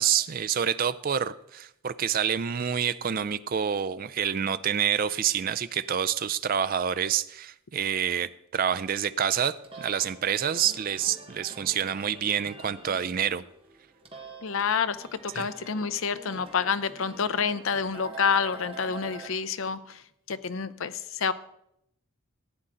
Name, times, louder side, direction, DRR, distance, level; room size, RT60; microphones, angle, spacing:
voice 1, 0.0-13.4 15.3-15.5, right 8 dB, 40° right, 15 dB, 0.4 m, -27 dB
sound 1, 9.5-19.3, right 3 dB, 25° right, 1.4 m, -46 dB
voice 2, 14.4-20.0 20.3-21.3, left 6 dB, 65° left, 13 dB, 0.5 m, -28 dB
15.0 x 8.7 x 3.9 m, 0.78 s
head